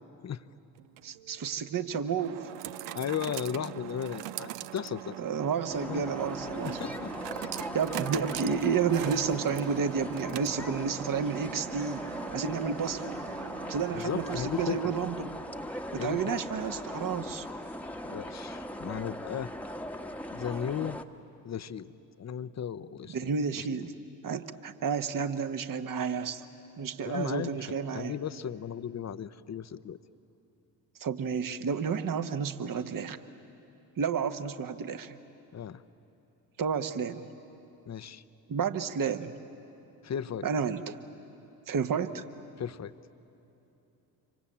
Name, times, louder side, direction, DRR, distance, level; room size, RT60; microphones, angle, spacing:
sound 1, 0.8-14.7, right 14 dB, 55° right, 0.7 m, -42 dB
voice 1, 1.0-2.4 5.2-6.9 7.7-12.0 12.3-13.2 13.7-15.3 15.9-17.5 23.1-23.9 24.2-26.4 26.8-28.1 31.0-33.2 34.0-35.2 36.6-37.2 38.5-39.3 40.4-41.0 41.7-42.2, right 6 dB, 40° right, 10 dB, 1.4 m, -31 dB
voice 2, 2.9-5.1 5.9-6.0 6.6-7.1 13.9-14.8 16.0-16.2 18.0-19.5 20.3-21.0 21.4-21.9 22.2-23.3 23.6-23.7 27.0-27.6 27.9-30.0 35.5-35.8 37.9-38.2 40.0-40.5 42.6-42.9, left 8 dB, 35° left, 12 dB, 0.9 m, -35 dB
sound 2, 5.7-21.0, equal, 5° left, 1.3 m, -39 dB
26.0 x 25.0 x 8.8 m, 3.0 s
hypercardioid pair, 50°, 50 cm